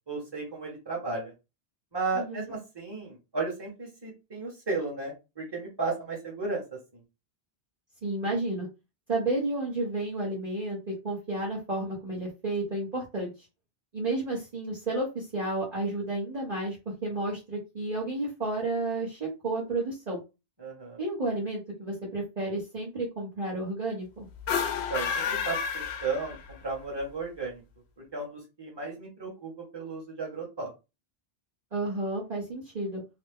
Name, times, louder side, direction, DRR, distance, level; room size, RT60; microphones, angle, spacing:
voice 1, 0.1-1.3 1.9-6.6 6.9-7.0 20.6-21.0 24.9-27.6 28.1-30.7, right 3 dB, 25° right, -2 dB, 1.3 m, -34 dB
voice 2, 2.1-2.5 8.0-8.7 9.1-13.3 13.9-20.2 21.0-24.3 31.7-33.0, right 2 dB, 40° right, -6 dB, 1.1 m, -31 dB
sound 1, 24.4-26.7, left 7 dB, 85° left, 0.8 m, -30 dB
3.0 x 2.1 x 3.5 m, 0.26 s
omnidirectional pair, 1.1 m